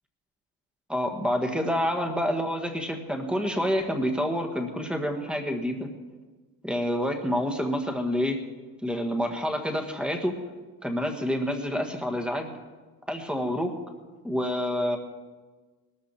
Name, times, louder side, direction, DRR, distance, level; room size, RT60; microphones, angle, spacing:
voice 1, 0.9-5.9 6.6-8.4 8.8-10.4 10.8-12.5 13.1-13.8 14.2-15.0, equal, 5° right, 4 dB, 1.5 m, -28 dB
19.5 x 13.5 x 4.4 m, 1.3 s
cardioid pair, 155°, 33 cm